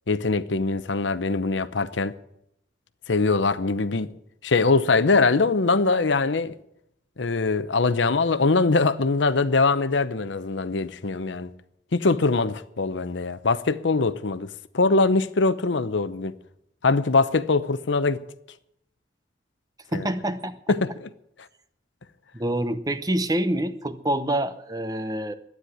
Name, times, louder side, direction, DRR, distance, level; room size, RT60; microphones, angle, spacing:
voice 1, 0.1-2.2 3.1-4.2 4.4-6.5 7.2-11.5 11.9-14.5 14.7-16.3 16.8-18.2 19.9-20.1 20.7-21.1, left 3 dB, 85° left, 0.8 m, -22 dB
voice 2, 19.9-20.5 22.3-25.3, right 1 dB, 20° right, 0.8 m, -26 dB
12.0 x 9.6 x 9.8 m
head